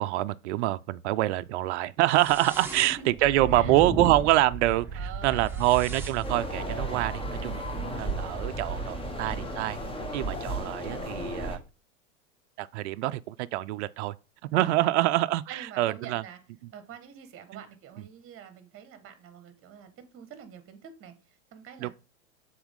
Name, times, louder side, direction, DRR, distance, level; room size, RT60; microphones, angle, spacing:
voice 1, 0.0-9.8 10.1-11.6 12.6-14.1 14.4-16.2 21.8-21.9, right 16 dB, 55° right, 0.5 m, -26 dB
sound 1, 2.1-9.6, right 3 dB, 5° right, 1.2 m, -36 dB
voice 2, 2.7-3.1 3.5-3.8 4.9-5.9 9.3-9.5 15.5-16.4 16.7-21.9, right 7 dB, 30° right, 1.5 m, -46 dB
sound 2, 6.2-11.6, equal, 15° left, 1.3 m, -35 dB
6.9 x 4.0 x 3.6 m
hypercardioid pair, 105°, 42 cm